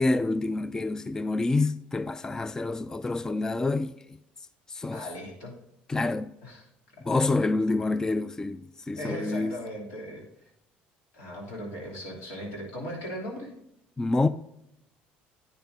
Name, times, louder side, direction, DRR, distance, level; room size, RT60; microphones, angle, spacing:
voice 1, 0.0-4.2 4.7-5.1 5.9-6.3 7.0-9.6 14.0-14.3, left 2 dB, 15° left, 0.3 m, -27 dB
voice 2, 4.9-5.6 6.4-7.1 9.0-10.5 11.1-13.5, equal, 80° left, 2.9 m, -38 dB
10.5 x 9.0 x 2.7 m
supercardioid pair, 95°, 4 cm